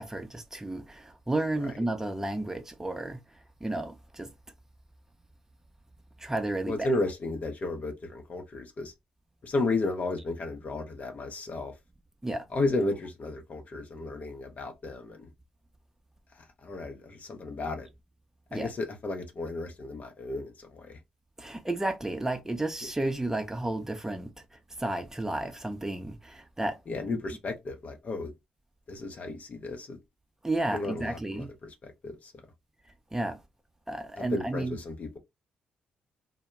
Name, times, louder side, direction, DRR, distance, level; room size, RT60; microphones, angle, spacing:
voice 1, 0.0-3.2 3.6-4.3 6.2-6.9 12.2-12.4 18.5-18.7 21.4-24.3 24.8-26.8 27.1-27.2 30.4-31.5 33.1-33.4 33.9-34.8, right 2 dB, 15° right, 0.6 m, -32 dB
voice 2, 6.7-8.9 9.4-11.7 12.5-15.3 16.6-17.9 18.5-21.0 26.9-28.3 28.9-30.0 30.7-32.3 34.2-35.2, left 2 dB, 45° left, 0.6 m, -33 dB
2.1 x 2.1 x 3.0 m
hypercardioid pair, 40°, 3 cm